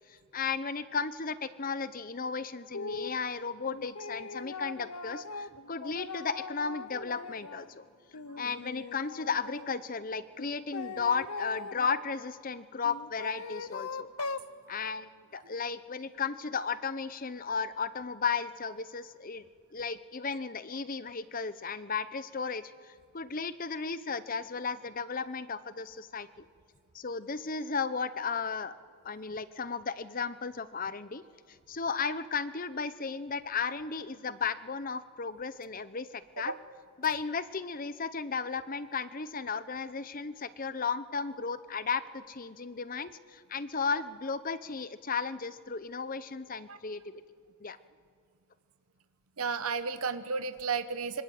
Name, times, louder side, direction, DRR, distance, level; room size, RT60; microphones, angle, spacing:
voice 1, 0.1-7.8 8.4-14.1 14.7-19.4 19.7-26.3 26.9-28.7 29.0-31.2 31.7-36.5 37.0-47.0 47.6-47.8, left 5 dB, 40° left, 14 dB, 0.8 m, -34 dB
sound 1, 2.7-3.2 3.7-7.7 8.1-9.7 10.4-12.0 12.8-14.5, left 4 dB, 80° left, 0.8 m, -41 dB
voice 2, 49.4-51.2, right 5 dB, 75° right, 11 dB, 0.9 m, -33 dB
26.0 x 25.0 x 7.8 m, 2.1 s
head